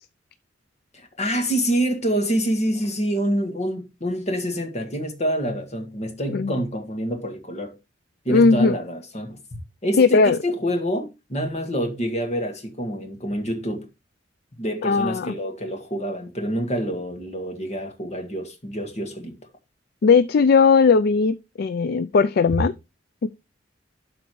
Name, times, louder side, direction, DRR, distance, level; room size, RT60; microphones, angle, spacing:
voice 1, 0.9-7.7 8.3-9.4 9.8-13.9 14.6-19.4, equal, 40° left, 1.8 m, -27 dB
voice 2, 8.3-8.8 10.0-10.4 14.8-15.3 20.0-22.7 23.2-23.3, left 4 dB, 55° left, 0.4 m, -18 dB
12.0 x 4.1 x 3.1 m
head